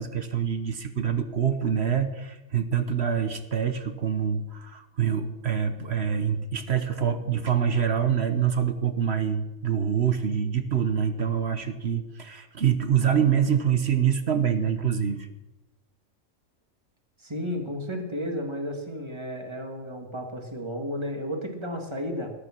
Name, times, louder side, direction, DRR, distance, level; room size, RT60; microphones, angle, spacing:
voice 1, 0.0-15.3, right 8 dB, 55° right, 9 dB, 1.3 m, -25 dB
voice 2, 17.2-22.3, equal, 20° right, 3 dB, 2.2 m, -33 dB
20.0 x 9.8 x 6.1 m, 1.0 s
omnidirectional pair, 1.4 m